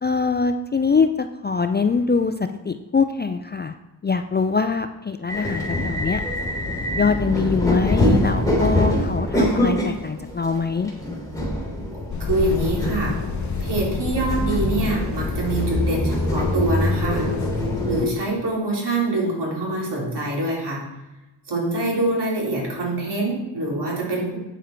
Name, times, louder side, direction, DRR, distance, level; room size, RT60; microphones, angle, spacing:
voice 1, 0.0-3.7 4.0-6.2 6.9-10.9, left 5 dB, 25° left, 8 dB, 0.4 m, -23 dB
sound 1, 5.3-18.0, left 1 dB, 5° left, 3.1 m, -24 dB
voice 2, 11.9-13.2 13.6-17.3 17.9-20.8 21.5-24.4, right 2 dB, 60° right, -3 dB, 3.5 m, -25 dB
sound 2, 12.1-18.0, left 5 dB, 40° left, 0.8 m, -30 dB
9.0 x 7.1 x 4.5 m, 1.0 s
cardioid pair, 75°, 46 cm